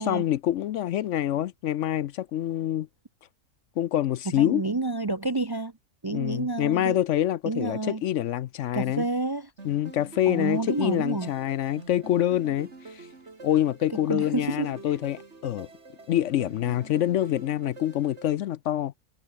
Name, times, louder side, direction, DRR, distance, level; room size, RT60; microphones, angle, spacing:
voice 1, 0.0-2.9 3.8-4.6 6.1-9.0 9.6-13.1 13.4-15.7 16.1-18.9, left 12 dB, 70° left, 0.9 m, -26 dB
voice 2, 4.3-5.7 6.0-7.0 7.4-8.0 8.7-9.5 10.3-11.3 14.1-14.9, right 2 dB, 25° right, 0.5 m, -29 dB
sound 1, 9.6-18.3, right 3 dB, 55° right, 3.1 m, -46 dB
omnidirectional pair, 1.4 m